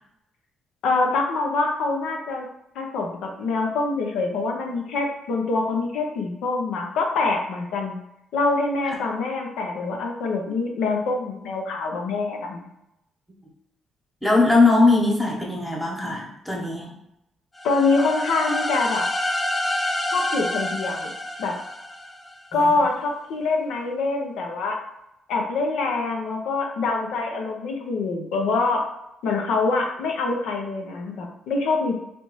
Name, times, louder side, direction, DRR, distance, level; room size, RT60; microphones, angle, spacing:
voice 1, 0.8-2.5 2.7-8.0 8.3-12.7 17.6-19.0 20.1-21.1 21.4-21.5 22.5-24.8 25.3-28.8 29.2-32.0, left 3 dB, 85° left, 1 dB, 0.7 m, -25 dB
voice 2, 14.2-16.9 22.5-22.8, left 3 dB, ahead, -3 dB, 1.1 m, -20 dB
sound 1, 17.6-22.4, left 1 dB, 25° left, 0.6 m, -28 dB
3.3 x 2.6 x 3.1 m, 0.84 s
cardioid pair, 90°, 0 cm